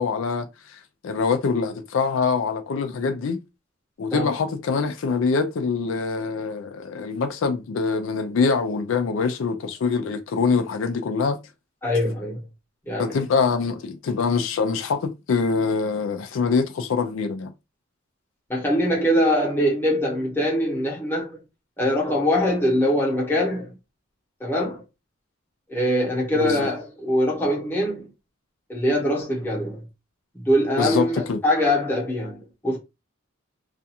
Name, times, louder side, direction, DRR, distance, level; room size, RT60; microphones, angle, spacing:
voice 1, 0.0-3.4 4.0-11.4 13.0-17.5 26.4-26.7 30.8-31.4, left 5 dB, 75° left, 0.4 m, -24 dB
voice 2, 11.8-12.4 12.8-13.2 18.5-21.4 21.8-23.8 24.4-24.8 25.7-28.1 28.7-29.8 30.3-32.8, equal, 10° left, 0.9 m, -23 dB
2.4 x 2.3 x 2.7 m
head